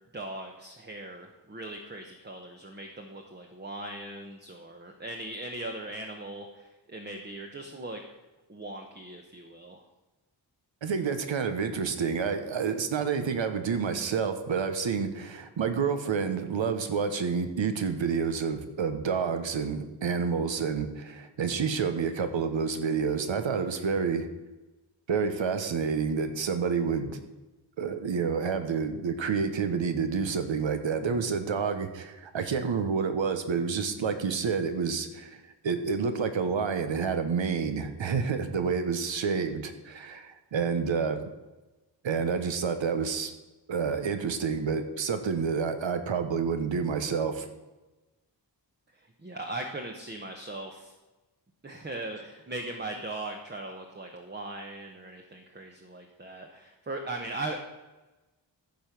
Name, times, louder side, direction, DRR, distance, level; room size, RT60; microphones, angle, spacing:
voice 1, 0.1-8.0 8.5-9.8 48.9-50.9 51.6-57.8, right 2 dB, 25° right, 3 dB, 0.9 m, -39 dB
voice 2, 10.8-24.3 25.1-27.2 27.8-41.3 42.0-43.3 43.7-47.5, right 5 dB, 80° right, 8 dB, 1.2 m, -29 dB
14.5 x 5.3 x 6.0 m, 1.1 s
wide cardioid pair, 140°, 45 cm